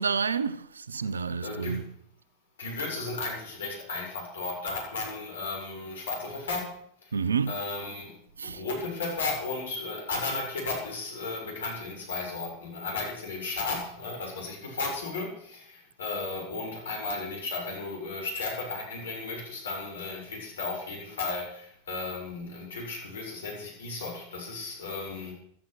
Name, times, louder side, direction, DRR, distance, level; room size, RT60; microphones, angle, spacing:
voice 1, 0.0-1.8 7.1-7.6 8.4-8.6, right 6 dB, 80° right, 0.8 m, -29 dB
voice 2, 1.4-1.9 2.6-6.8 7.0-8.2 8.5-25.3, left 3 dB, 75° left, 7.3 m, -34 dB
15.0 x 13.5 x 6.4 m
figure-of-eight pair, 90°, 0 cm